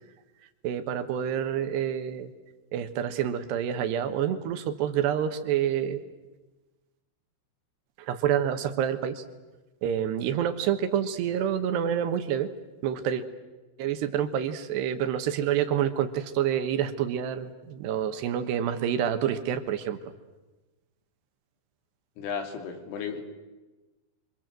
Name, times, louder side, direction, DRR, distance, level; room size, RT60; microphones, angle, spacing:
voice 1, 0.6-2.3 2.7-6.0 8.0-9.2 9.8-12.5 12.8-13.2 13.8-20.0, right 9 dB, 70° right, 8 dB, 3.0 m, -28 dB
voice 2, 22.2-23.2, left 6 dB, 75° left, 5 dB, 5.4 m, -34 dB
30.0 x 24.5 x 7.6 m, 1.1 s
omnidirectional pair, 5.9 m